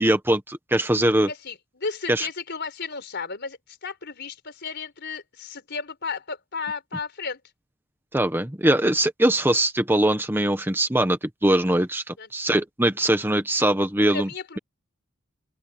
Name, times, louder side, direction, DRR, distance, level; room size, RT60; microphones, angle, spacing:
voice 1, 0.0-1.3 2.1-2.3 8.1-14.3, right 1 dB, 10° right, 1.3 m, -22 dB
voice 2, 1.3-7.4 12.2-12.3 14.1-14.6, left 4 dB, 55° left, 4.4 m, -34 dB
open air
head